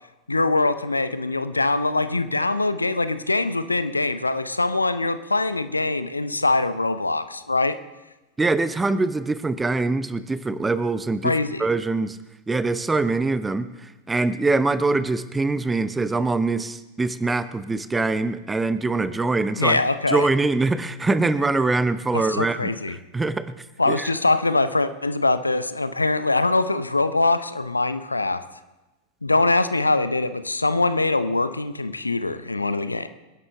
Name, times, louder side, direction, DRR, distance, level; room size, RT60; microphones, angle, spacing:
voice 1, 0.3-7.8 11.2-11.6 19.6-20.3 22.1-23.0 23.8-28.4 29.2-33.1, left 2 dB, 80° left, 12 dB, 0.7 m, -23 dB
voice 2, 8.4-11.3 11.6-12.2 12.5-19.8 20.1-23.4 23.9-24.1, right 3 dB, 10° right, 14 dB, 0.7 m, -23 dB
26.5 x 11.0 x 3.4 m, 1.1 s
figure-of-eight pair, 90°, 0 cm